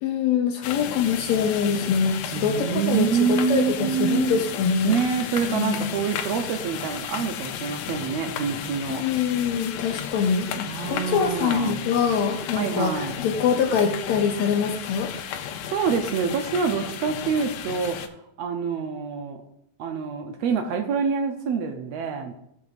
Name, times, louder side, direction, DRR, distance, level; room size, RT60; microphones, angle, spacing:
voice 1, 0.0-4.9 5.5-5.9 8.9-15.4, left 6 dB, 75° left, 4 dB, 1.9 m, -24 dB
sound 1, 0.6-18.1, left 9 dB, 90° left, 2.2 m, -34 dB
voice 2, 2.3-4.4 4.8-9.0 10.7-11.8 12.6-13.2 15.6-18.0 18.4-19.4 19.8-22.3, right 6 dB, 80° right, 5 dB, 1.5 m, -26 dB
14.5 x 6.9 x 2.5 m, 0.79 s
omnidirectional pair, 3.7 m